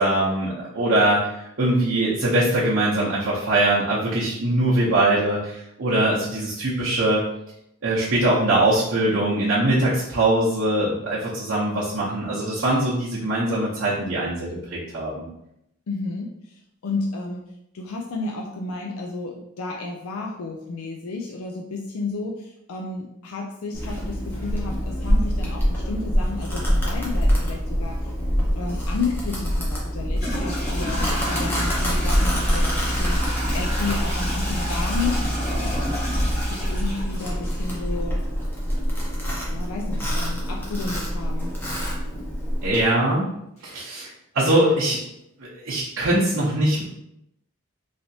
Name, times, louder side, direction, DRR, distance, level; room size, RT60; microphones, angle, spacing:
voice 1, 0.0-7.2 7.8-15.3 42.6-43.3 43.6-45.0 45.4-46.8, right 1 dB, 65° right, -8 dB, 0.7 m, -22 dB
voice 2, 15.9-17.5 17.7-28.1 28.6-33.2 33.5-35.3 36.5-38.2 39.5-41.5, left 3 dB, 80° left, 1 dB, 0.4 m, -32 dB
Domestic sounds home sounds, 23.7-42.8, equal, 10° left, 0.6 m, -25 dB
Toilet flush / Trickle dribble, 29.3-29.4 30.1-37.9, equal, 30° left, 1.1 m, -31 dB
3.2 x 2.8 x 2.7 m, 0.79 s
head